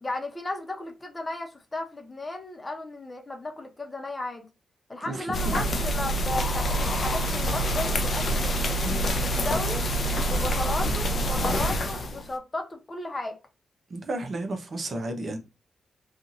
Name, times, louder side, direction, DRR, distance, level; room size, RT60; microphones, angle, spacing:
voice 1, 0.0-4.5 4.9-9.9 10.3-13.4, left 2 dB, 30° left, 0.9 m, -35 dB
voice 2, 5.0-5.6 13.9-15.4, right 2 dB, 55° right, 0.8 m, -32 dB
sound 1, 5.3-12.3, equal, 55° left, 0.5 m, -26 dB
2.7 x 2.5 x 2.6 m
supercardioid pair, 45°, 0 cm